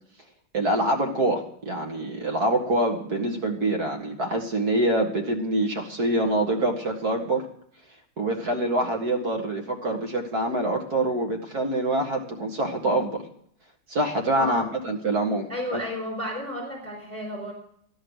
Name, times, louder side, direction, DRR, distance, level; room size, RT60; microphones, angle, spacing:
voice 1, 0.5-7.5 8.2-13.2 13.9-15.8, right 1 dB, 50° right, 2 dB, 2.3 m, -25 dB
voice 2, 14.3-14.7 15.5-17.5, equal, 5° left, -1 dB, 4.7 m, -32 dB
15.5 x 11.0 x 6.5 m, 0.68 s
omnidirectional pair, 2.2 m